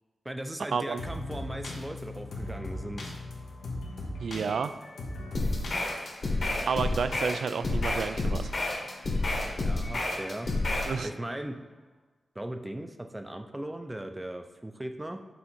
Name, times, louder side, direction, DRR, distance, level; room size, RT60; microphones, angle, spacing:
voice 1, 0.2-3.2 9.5-10.5 11.0-11.6 12.4-15.2, right 1 dB, 15° right, 6 dB, 0.5 m, -38 dB
sound 1, 1.0-10.7, left 1 dB, 85° left, 1.3 m, -41 dB
voice 2, 4.2-4.7 6.7-8.8 10.9-11.1, right 5 dB, 85° right, 11 dB, 0.3 m, -31 dB
sound 2, 5.3-11.0, left 2 dB, 50° left, 1.5 m, -29 dB
6.9 x 3.7 x 4.4 m, 1.2 s
wide cardioid pair, 130°, 0 cm